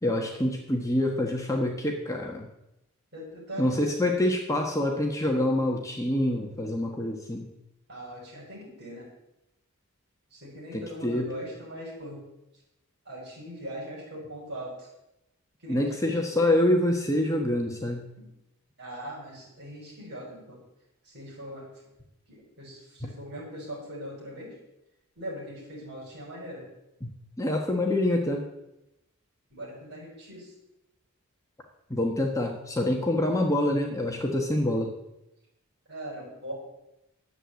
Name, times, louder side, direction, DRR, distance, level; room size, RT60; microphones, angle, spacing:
voice 1, 0.0-2.5 3.6-7.5 10.7-11.3 15.7-18.0 23.0-23.1 27.0-28.4 31.9-34.9, left 1 dB, 15° left, 1 dB, 1.2 m, -26 dB
voice 2, 3.1-3.8 7.9-9.1 10.3-12.2 13.1-14.9 15.6-16.2 18.8-20.6 21.1-21.7 22.3-24.5 25.2-26.6 29.5-30.5 35.9-36.5, equal, 50° right, -3 dB, 6.2 m, -40 dB
11.0 x 7.9 x 8.2 m, 0.89 s
head